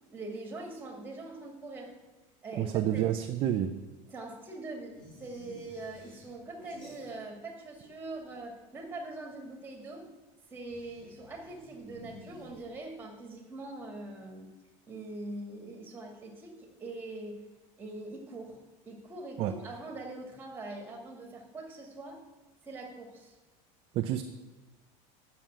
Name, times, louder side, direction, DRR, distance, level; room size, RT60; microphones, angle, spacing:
voice 1, 0.0-1.9 2.4-3.0 4.1-10.1 10.5-14.5 14.9-17.4 17.8-18.6 18.9-22.2 22.6-23.4, right 2 dB, 10° right, 1 dB, 2.1 m, -43 dB
voice 2, 2.6-3.7 19.4-19.5 23.9-24.2, right 11 dB, 35° right, 7 dB, 0.5 m, -29 dB
sound 1, 4.9-7.5 7.8-8.6 10.6-13.1, left 2 dB, 25° left, 4.0 m, -54 dB
9.2 x 6.9 x 8.8 m, 1.2 s
cardioid pair, 170°, 17 cm